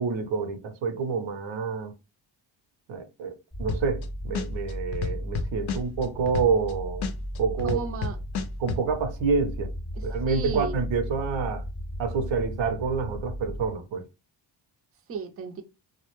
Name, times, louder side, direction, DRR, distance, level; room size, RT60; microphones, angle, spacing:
voice 1, 0.0-2.0 2.9-7.1 7.4-7.8 8.6-9.7 10.0-11.6 12.0-14.1, right 5 dB, 80° right, 0.7 m, -28 dB
sound 1, 3.5-13.7, equal, 5° left, 0.8 m, -35 dB
sound 2, 3.7-4.0 4.3-6.7 7.0-8.8, left 5 dB, 60° left, 0.5 m, -30 dB
voice 2, 7.6-8.2 10.0-10.8 15.1-15.6, right 5 dB, 30° right, 0.5 m, -35 dB
2.3 x 2.0 x 3.0 m
cardioid pair, 100°, 46 cm